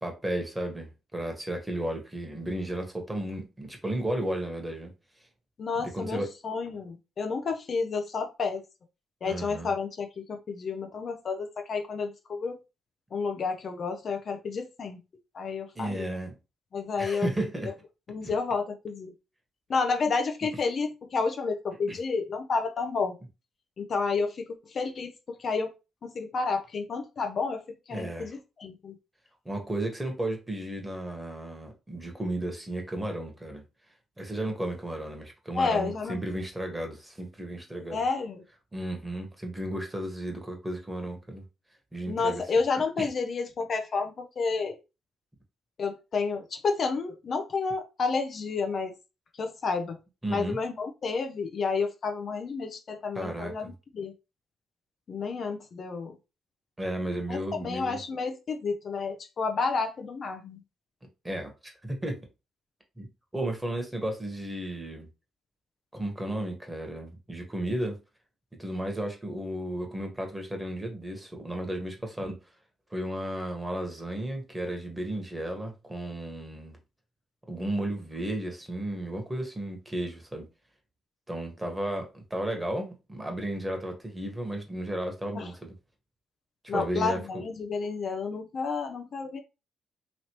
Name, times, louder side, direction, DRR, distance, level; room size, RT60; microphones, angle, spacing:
voice 1, 0.0-4.9 5.8-6.3 9.2-9.7 15.7-16.3 17.0-17.7 18.2-18.3 21.9-22.0 27.9-28.3 29.4-33.6 34.2-38.0 38.7-41.4 41.9-42.4 43.0-43.1 50.2-50.6 53.1-53.5 56.8-58.0 61.2-62.2 63.0-63.1 63.3-65.1 65.9-68.0 68.6-72.4 72.9-76.8 77.5-80.5 81.3-85.7 86.6-87.2, right 1 dB, 15° right, 1.2 m, -33 dB
voice 2, 5.6-8.6 9.2-12.6 13.1-15.0 15.3-16.1 16.7-17.3 17.6-17.7 18.1-19.1 19.7-23.1 23.8-25.7 26.0-28.9 35.5-36.2 37.9-38.4 42.1-44.8 45.8-48.9 49.4-50.0 50.3-54.1 55.1-56.1 57.3-60.6 85.3-85.5 86.7-89.4, left 4 dB, 55° left, 0.5 m, -30 dB
3.0 x 2.8 x 2.9 m
hypercardioid pair, 55°, 0 cm